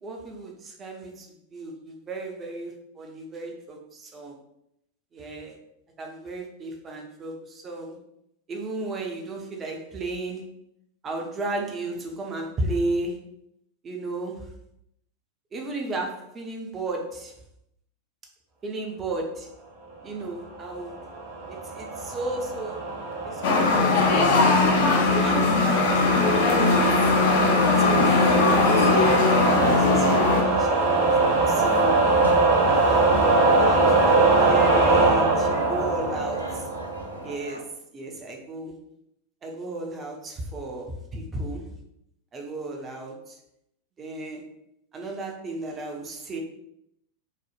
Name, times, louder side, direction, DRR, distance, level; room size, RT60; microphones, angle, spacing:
voice 1, 0.0-4.4 5.1-5.6 6.0-8.0 8.5-10.5 11.0-13.2 13.8-14.5 15.5-17.3 18.6-19.5 20.0-21.0 21.5-22.8 23.2-24.3 24.7-27.0 27.8-32.1 32.7-33.3 33.6-36.6 37.2-37.7 37.9-38.7 39.4-41.7 42.3-43.4 44.0-44.5 44.9-46.4, right 2 dB, 25° right, 1 dB, 0.6 m, -34 dB
sound 1, 20.8-37.3, right 3 dB, 45° right, 0.9 m, -23 dB
sound 2, 23.4-30.4, left 3 dB, 50° left, 0.5 m, -20 dB
sound 3, 27.0-37.6, right 1 dB, 90° right, 0.4 m, -39 dB
3.2 x 2.0 x 2.5 m, 0.79 s
figure-of-eight pair, 90°, 0 cm